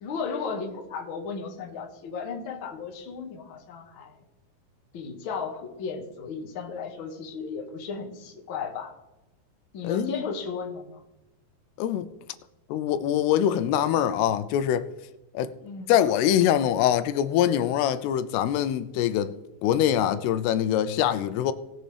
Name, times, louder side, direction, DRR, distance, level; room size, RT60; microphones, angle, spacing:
voice 1, 0.0-4.2 4.9-8.9 9.7-11.0 15.6-15.9, left 5 dB, 60° left, 1.3 m, -35 dB
voice 2, 9.8-10.2 11.8-12.1 12.7-14.9 15.3-15.5 15.9-19.3 19.6-21.5, left 10 dB, 90° left, 2.6 m, -24 dB
19.0 x 7.6 x 3.4 m
omnidirectional pair, 4.6 m